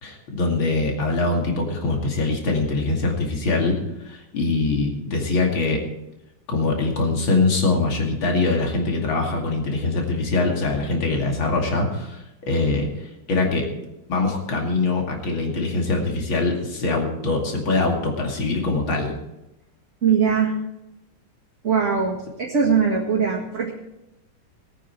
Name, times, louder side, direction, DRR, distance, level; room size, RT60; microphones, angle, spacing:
voice 1, 0.0-3.8 4.1-5.8 6.5-12.9 13.3-13.7 14.1-19.1, left 3 dB, 65° left, 1 dB, 3.3 m, -23 dB
voice 2, 20.0-20.5 21.6-23.7, right 6 dB, 35° right, -4 dB, 2.1 m, -21 dB
20.5 x 9.1 x 4.7 m, 0.91 s
omnidirectional pair, 2.4 m